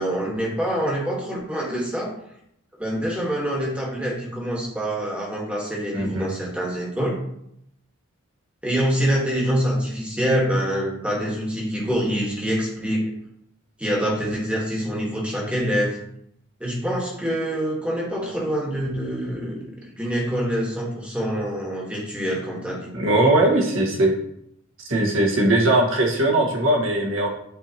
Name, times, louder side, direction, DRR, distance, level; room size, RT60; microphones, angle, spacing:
voice 1, 0.0-2.1 2.8-7.1 8.6-13.1 13.8-16.0 16.6-22.9, equal, 5° right, -3 dB, 1.4 m, -25 dB
voice 2, 5.9-6.3 22.9-24.1 24.9-27.3, right 1 dB, 65° right, -1 dB, 1.5 m, -20 dB
9.1 x 4.5 x 2.9 m, 0.74 s
head